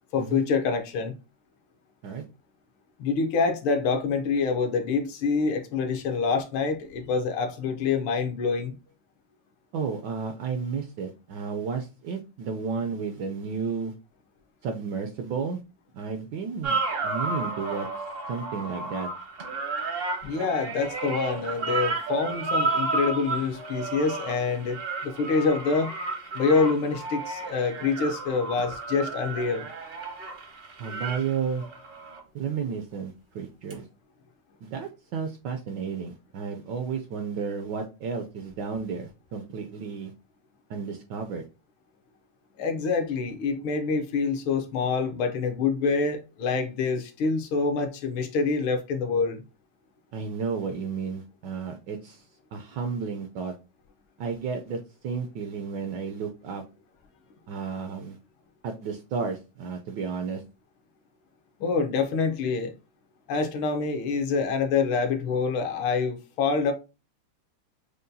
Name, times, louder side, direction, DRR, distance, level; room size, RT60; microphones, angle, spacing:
voice 1, 0.1-1.1 3.0-8.7 20.2-25.9 26.3-29.6 42.6-49.4 61.6-62.7 63.3-66.7, left 4 dB, 75° left, 1.5 m, -26 dB
voice 2, 9.7-13.9 14.6-15.6 15.9-16.8 17.0-17.9 18.3-19.1 30.8-31.7 32.3-33.8 34.6-40.1 40.7-41.4 50.1-52.2 52.5-53.5 54.2-56.6 57.5-58.2 58.6-60.4, right 5 dB, 75° right, 1.0 m, -32 dB
sound 1, 16.6-32.2 33.7-33.8, right 3 dB, 55° right, 0.6 m, -32 dB
6.5 x 2.2 x 2.6 m
omnidirectional pair, 2.3 m